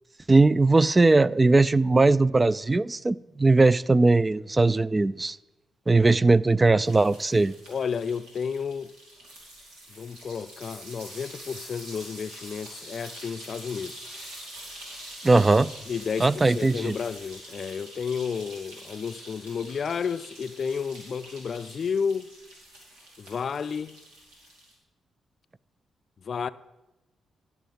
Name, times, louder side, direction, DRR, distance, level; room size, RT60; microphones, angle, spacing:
voice 1, 0.3-5.4 5.9-7.5 15.2-15.7 16.2-16.9, right 3 dB, 25° right, 0.3 m, -20 dB
sound 1, 6.9-24.7, right 1 dB, 90° right, 2.4 m, -45 dB
voice 2, 7.7-8.9 10.0-14.0 15.9-22.3 23.2-24.0 26.2-26.5, left 6 dB, 55° left, 0.4 m, -31 dB
11.5 x 5.9 x 5.3 m
hypercardioid pair, 45°, 0 cm